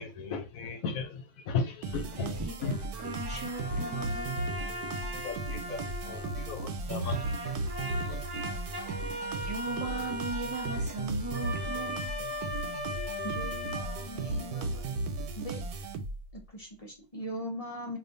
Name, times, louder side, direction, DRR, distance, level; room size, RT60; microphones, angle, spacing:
voice 1, 0.0-2.3 2.6-2.7 5.1-7.2 8.1-8.2, left 4 dB, 70° left, 1.0 m, -35 dB
sound 1, 1.8-16.4, right 3 dB, 85° right, 1.1 m, -36 dB
voice 2, 2.1-4.4 6.8-6.9 9.4-12.1, right 2 dB, 5° right, 1.1 m, -38 dB
sound 2, 2.9-6.7 7.0-14.6, left 1 dB, 45° right, 0.5 m, -39 dB
voice 3, 13.2-14.9 15.4-15.6 16.3-18.0, equal, 40° left, 0.5 m, -40 dB
2.6 x 2.4 x 3.7 m
omnidirectional pair, 1.6 m